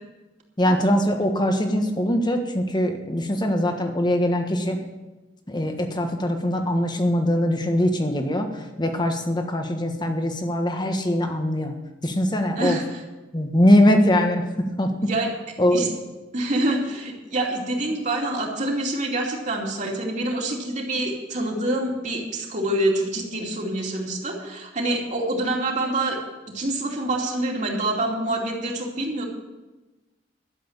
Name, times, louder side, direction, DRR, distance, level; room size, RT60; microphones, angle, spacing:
voice 1, 0.6-4.8 5.5-11.8 12.0-12.8 13.3-15.1 15.6-15.9, left 1 dB, 25° left, 5 dB, 1.4 m, -22 dB
voice 2, 16.3-26.2 26.5-29.2, right 1 dB, 45° right, -1 dB, 2.7 m, -26 dB
12.0 x 7.7 x 8.8 m, 1.1 s
head